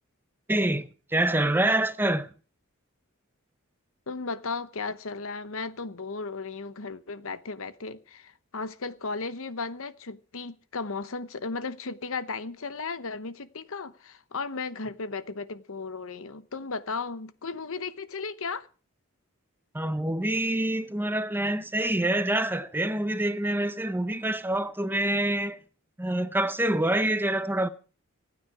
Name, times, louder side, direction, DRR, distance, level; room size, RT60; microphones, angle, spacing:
voice 1, 0.5-2.3 19.7-25.6 26.0-27.7, right 1 dB, 10° right, 0.8 m, -26 dB
voice 2, 4.1-18.7, left 4 dB, 65° left, 1.0 m, -35 dB
25.5 x 9.4 x 4.8 m
head